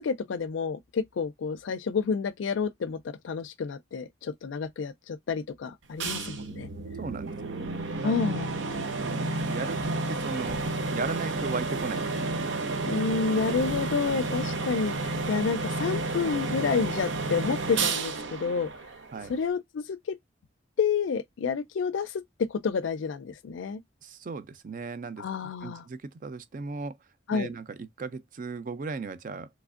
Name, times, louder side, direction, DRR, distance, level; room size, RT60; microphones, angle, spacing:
voice 1, 0.0-6.7 8.0-8.5 12.8-18.7 19.3-20.2 20.8-22.2 22.5-23.8 25.2-25.8 27.3-27.5, left 5 dB, 85° left, 0.4 m, -29 dB
sound 1, 6.0-19.5, right 3 dB, 80° right, 0.7 m, -31 dB
voice 2, 7.0-7.5 8.0-8.2 9.0-10.6 10.9-13.0 19.1-19.3 24.0-25.2 25.6-27.0 27.3-29.5, right 4 dB, 45° right, 0.5 m, -36 dB
3.3 x 3.1 x 2.4 m
head